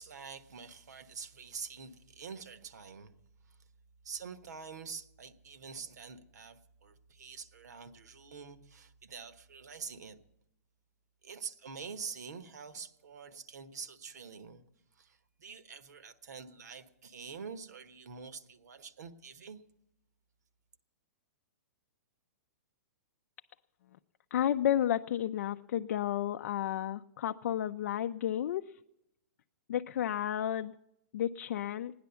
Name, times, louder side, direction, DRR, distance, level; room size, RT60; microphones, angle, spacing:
voice 1, 0.0-3.1 3.5-3.6 4.0-10.2 11.2-14.6 15.0-19.6, right 5 dB, 85° right, 1.2 m, -46 dB
voice 2, 24.3-28.6 29.7-30.7 31.1-31.9, left 11 dB, 65° left, 0.4 m, -32 dB
16.5 x 10.5 x 6.9 m
hypercardioid pair, 145°, 9 cm